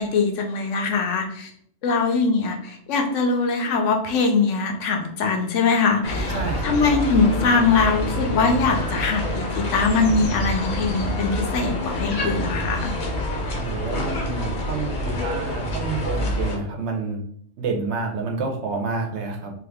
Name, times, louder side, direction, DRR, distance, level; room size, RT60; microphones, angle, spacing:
voice 1, 0.0-1.5 1.8-12.9, left 4 dB, 75° left, 3 dB, 0.9 m, -22 dB
sound 1, 6.0-16.6, left 1 dB, 45° left, 0.7 m, -27 dB
voice 2, 6.3-6.8 13.5-17.2 17.6-19.5, right 4 dB, 65° right, 2 dB, 0.8 m, -29 dB
2.7 x 2.4 x 3.4 m, 0.66 s
omnidirectional pair, 1.3 m